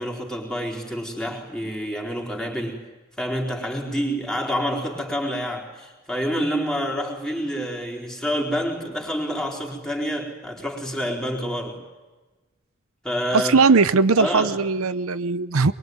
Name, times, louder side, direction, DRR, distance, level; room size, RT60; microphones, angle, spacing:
voice 1, 0.0-2.8 3.2-11.8 13.0-13.6 14.2-14.6, equal, 5° left, 0 dB, 4.2 m, -28 dB
voice 2, 13.3-15.7, right 4 dB, 80° right, 14 dB, 0.8 m, -19 dB
23.5 x 23.0 x 9.4 m, 1.2 s
head